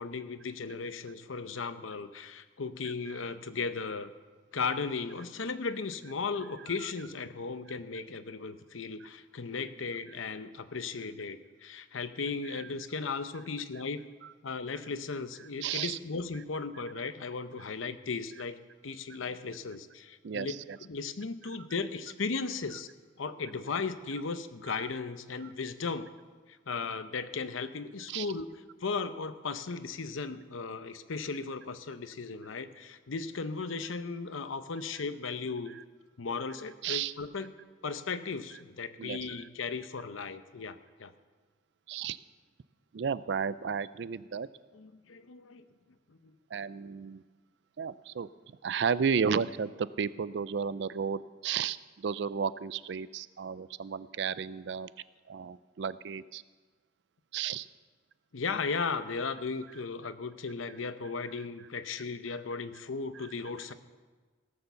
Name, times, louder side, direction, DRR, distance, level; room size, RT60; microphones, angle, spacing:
voice 1, 0.0-4.1 4.5-14.0 14.4-20.5 20.8-22.9 23.2-26.1 26.7-28.5 28.8-35.8 36.2-37.5 37.8-41.1 44.7-45.6 46.1-46.3 58.3-63.7, left 4 dB, 85° left, 11 dB, 0.7 m, -36 dB
voice 2, 15.6-16.0 20.2-20.8 25.4-25.5 28.1-28.3 36.8-37.1 39.0-39.4 41.9-42.2 42.9-44.5 46.5-47.2 47.8-48.3 48.6-54.9 55.3-56.4 57.3-57.7 63.2-63.3, right 6 dB, 60° right, 17 dB, 0.4 m, -33 dB
17.0 x 6.9 x 6.9 m, 1.4 s
head